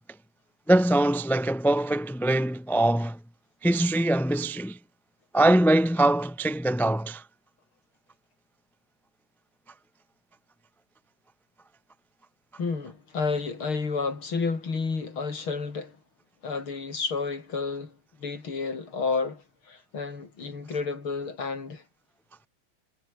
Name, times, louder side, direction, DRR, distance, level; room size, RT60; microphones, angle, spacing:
voice 1, 0.7-3.2 3.6-4.8 5.3-7.2, right 1 dB, ahead, 0.5 m, -23 dB
voice 2, 12.6-16.0 16.4-21.8, left 4 dB, 85° left, 4.7 m, -31 dB
omnidirectional pair, 2.2 m